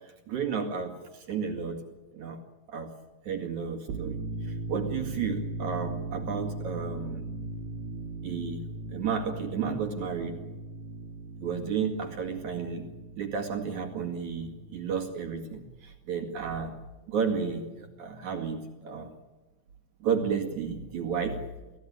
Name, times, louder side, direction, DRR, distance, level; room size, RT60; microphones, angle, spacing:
voice 1, 0.0-1.8 2.1-2.4 2.7-2.9 3.2-7.3 8.2-10.4 11.4-12.9 13.2-16.8 17.1-19.2 20.0-21.4, right 6 dB, 50° right, 4 dB, 2.6 m, -32 dB
sound 1, 3.8-15.3, right 2 dB, 65° right, 3.6 m, -38 dB
25.5 x 17.0 x 9.6 m, 1.2 s
omnidirectional pair, 5.8 m